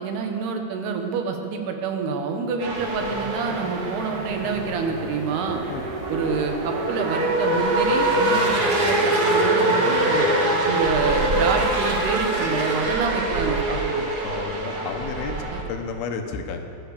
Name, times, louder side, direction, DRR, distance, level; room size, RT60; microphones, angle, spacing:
voice 1, 0.0-5.6 6.1-10.3 10.7-14.1 15.5-15.7, right 5 dB, 85° right, 4 dB, 3.3 m, -27 dB
sound 1, 2.6-15.6, right 1 dB, 70° right, 0.9 m, -24 dB
sound 2, 2.7-12.7, left 1 dB, 25° left, 1.4 m, -40 dB
voice 2, 14.2-16.6, left 5 dB, 80° left, 5 dB, 3.0 m, -32 dB
17.0 x 11.5 x 6.8 m, 2.7 s
omnidirectional pair, 4.5 m